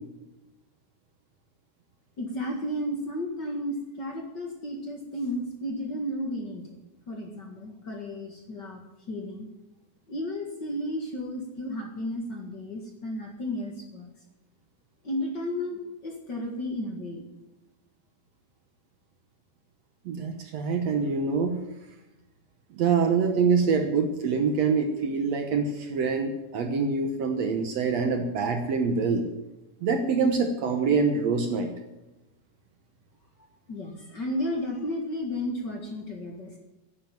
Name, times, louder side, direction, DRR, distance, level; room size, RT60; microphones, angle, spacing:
voice 1, 2.2-6.8 7.1-9.5 10.1-14.1 15.0-17.3 33.7-36.6, left 1 dB, 40° left, 1 dB, 1.9 m, -33 dB
voice 2, 20.1-21.6 22.7-29.3 29.8-31.7, right 5 dB, 60° right, 6 dB, 2.0 m, -25 dB
11.5 x 9.9 x 9.2 m, 1.0 s
omnidirectional pair, 3.9 m